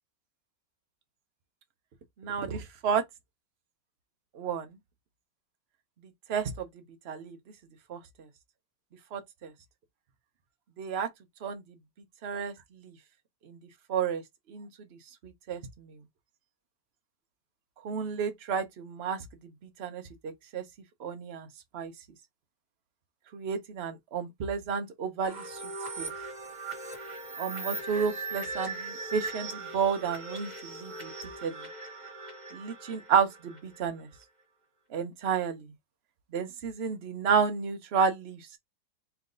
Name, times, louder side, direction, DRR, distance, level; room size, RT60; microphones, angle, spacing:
voice 1, 2.2-3.0 4.3-4.7 6.3-6.7 7.1-7.4 7.9-8.0 9.1-9.5 10.8-11.1 11.4-11.6 12.2-12.5 12.8-12.9 13.4-13.6 13.9-14.2 14.5-14.7 15.2-16.0 17.8-19.2 19.8-20.6 21.0-21.5 21.7-21.9 23.3-25.6 26.0-26.1 27.4-31.1 31.4-31.6 32.5-34.1 34.9-35.6 36.3-38.6, right 6 dB, 65° right, 0.6 m, -31 dB
sound 1, 25.2-33.9, right 2 dB, 30° right, 1.1 m, -39 dB
3.4 x 3.0 x 3.7 m
omnidirectional pair, 2.1 m